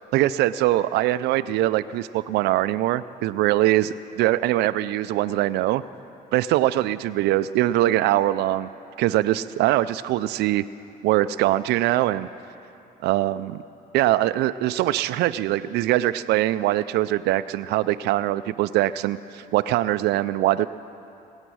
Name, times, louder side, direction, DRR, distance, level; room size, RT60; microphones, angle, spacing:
voice 1, 0.1-3.9 4.2-5.8 6.3-8.7 9.0-10.7 11.0-12.3 13.0-13.6 13.9-20.7, right 15 dB, 80° right, 15 dB, 0.4 m, -22 dB
20.0 x 9.0 x 6.2 m, 2.8 s
cardioid pair, 110°, 17 cm